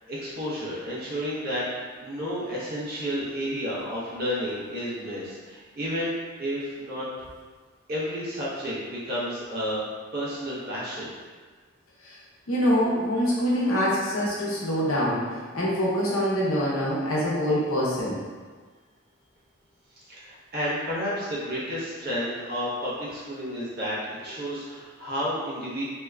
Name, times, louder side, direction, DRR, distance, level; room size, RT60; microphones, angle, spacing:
voice 1, 0.1-6.1 6.4-7.0 7.9-9.8 10.1-11.1 20.1-24.0 24.2-25.8, equal, 45° right, -8 dB, 0.9 m, -31 dB
voice 2, 12.5-15.2 15.5-18.2, equal, 80° left, -6 dB, 0.8 m, -24 dB
3.3 x 2.9 x 2.4 m, 1.5 s
head